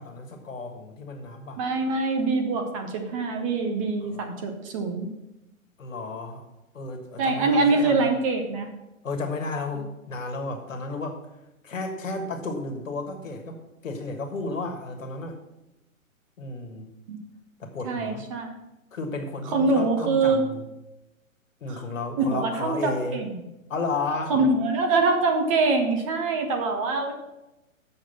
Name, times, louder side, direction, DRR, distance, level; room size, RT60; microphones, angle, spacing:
voice 1, 0.0-1.6 4.1-4.3 5.8-6.4 6.7-8.1 9.0-11.2 11.6-15.4 16.4-16.9 17.6-18.2 18.9-20.6 21.6-23.2 23.7-24.5, left 3 dB, 65° left, 4 dB, 1.7 m, -33 dB
voice 2, 1.6-5.1 7.2-8.7 17.1-17.2 17.9-18.6 19.5-20.4 21.7-21.8 22.2-23.4 24.3-27.1, right 3 dB, 25° right, 4 dB, 0.8 m, -24 dB
7.7 x 6.5 x 5.6 m, 0.97 s
figure-of-eight pair, 120°, 42 cm